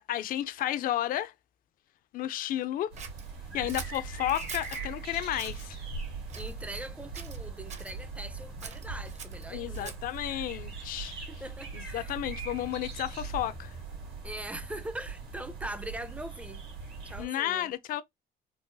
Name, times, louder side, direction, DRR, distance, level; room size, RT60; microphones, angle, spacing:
voice 1, 0.0-1.3 2.1-2.9 3.5-5.8 9.5-11.2 11.7-13.7 17.2-18.0, left 12 dB, 55° left, 0.4 m, -32 dB
sound 1, 2.9-17.3, right 4 dB, 70° right, 1.8 m, -40 dB
Scissors, 3.0-4.9 5.3-5.7 6.3-6.9 7.1-7.9 8.6-10.2, right 6 dB, 45° right, 0.8 m, -44 dB
voice 2, 6.3-10.0 11.3-12.2 14.2-16.6 17.0-17.7, right 1 dB, 10° right, 0.5 m, -41 dB
3.8 x 2.3 x 2.6 m
cardioid pair, 110°, 17 cm